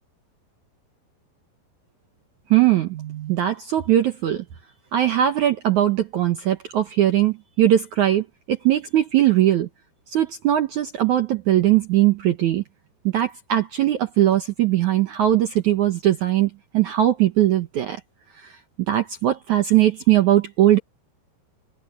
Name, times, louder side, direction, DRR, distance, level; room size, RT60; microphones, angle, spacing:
voice 1, 2.5-4.4 4.9-9.7 10.1-12.6 13.1-18.0 18.4-18.5 18.9-20.8, right 12 dB, 85° right, 1.6 m, -20 dB
omnidirectional pair, 5.2 m